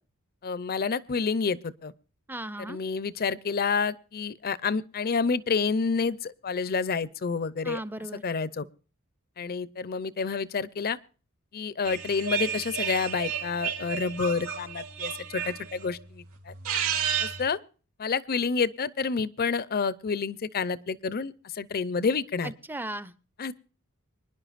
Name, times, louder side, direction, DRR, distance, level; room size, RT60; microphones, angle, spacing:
voice 1, 0.4-1.9 2.6-7.8 8.1-8.7 9.4-11.0 11.5-16.5 17.2-17.6 18.0-22.5 23.4-23.5, left 5 dB, 45° left, 0.6 m, -29 dB
voice 2, 2.3-2.8 7.6-8.2 22.4-23.1, right 1 dB, 10° right, 0.5 m, -36 dB
sound 1, 11.8-15.9 16.5-17.5, right 8 dB, 80° right, 3.3 m, -32 dB
25.0 x 10.5 x 2.5 m
head